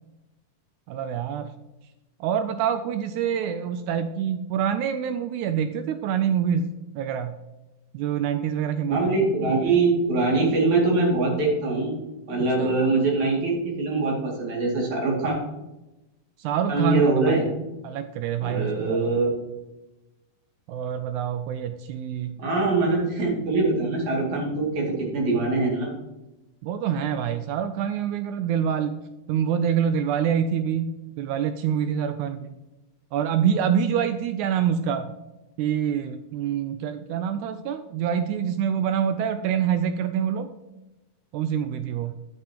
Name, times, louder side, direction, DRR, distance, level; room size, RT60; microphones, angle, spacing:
voice 1, 0.9-1.5 2.2-7.4 7.9-9.1 12.6-12.7 16.4-17.5 17.8-19.1 20.7-22.4 26.6-28.9 29.3-32.5 33.1-35.1 35.6-40.5 41.3-42.1, right 8 dB, 80° right, 9 dB, 1.8 m, -26 dB
voice 2, 8.9-11.9 12.3-15.4 16.7-17.4 18.4-19.4 22.4-25.9, right 3 dB, 60° right, -2 dB, 3.7 m, -23 dB
9.5 x 9.0 x 2.9 m, 0.99 s
omnidirectional pair, 3.8 m